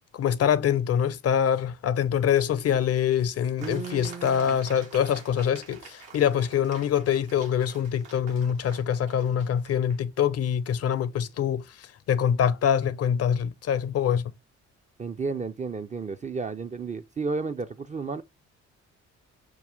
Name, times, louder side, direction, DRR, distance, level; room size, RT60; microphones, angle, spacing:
voice 1, 0.1-14.3, left 8 dB, 40° left, 0.5 m, -25 dB
voice 2, 3.6-4.6 15.0-18.2, right 4 dB, 20° right, 0.4 m, -32 dB
sound 1, 3.6-10.0, right 4 dB, 75° right, 1.3 m, -48 dB
6.1 x 2.3 x 3.3 m
figure-of-eight pair, 40°, 37 cm